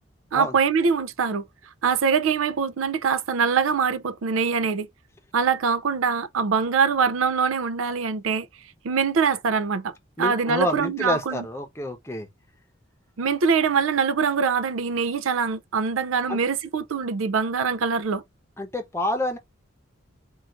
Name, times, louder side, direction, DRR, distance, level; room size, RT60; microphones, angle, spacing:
voice 1, 0.3-1.5 1.8-4.9 5.3-8.5 8.8-11.4 13.2-18.2, right 5 dB, 85° right, 0.5 m, -23 dB
voice 2, 10.2-12.3 16.3-16.4 18.6-19.4, left 1 dB, 15° left, 0.7 m, -28 dB
3.8 x 2.5 x 4.4 m
head